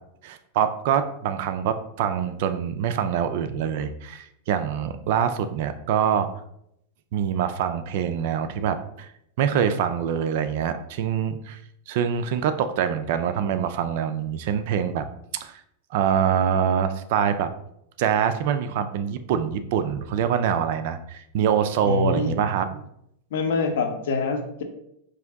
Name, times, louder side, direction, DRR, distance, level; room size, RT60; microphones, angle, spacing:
voice 1, 0.2-6.3 7.1-9.1 9.4-11.6 11.9-15.0 15.3-15.6 15.9-17.5 18.0-22.9, right 8 dB, 50° right, 10 dB, 0.3 m, -25 dB
voice 2, 21.8-22.4 23.3-24.6, left 4 dB, 70° left, 5 dB, 0.7 m, -25 dB
4.8 x 2.6 x 3.4 m, 0.76 s
supercardioid pair, 170°, 0 cm